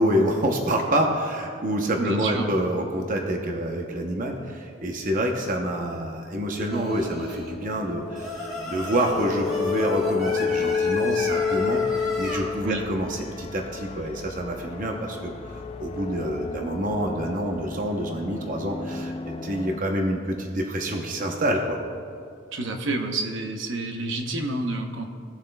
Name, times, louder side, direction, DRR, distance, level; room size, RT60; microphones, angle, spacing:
voice 1, 0.0-21.8, right 1 dB, 40° right, 2 dB, 0.7 m, -27 dB
voice 2, 2.0-2.5 12.6-12.8 22.5-25.1, right 2 dB, 65° right, 4 dB, 0.8 m, -29 dB
Singing, 6.7-7.5 8.1-12.4, left 1 dB, ahead, 2.4 m, -33 dB
sound 1, 7.3-19.8, left 6 dB, 30° left, 0.4 m, -31 dB
17.0 x 7.2 x 2.2 m, 2.4 s
head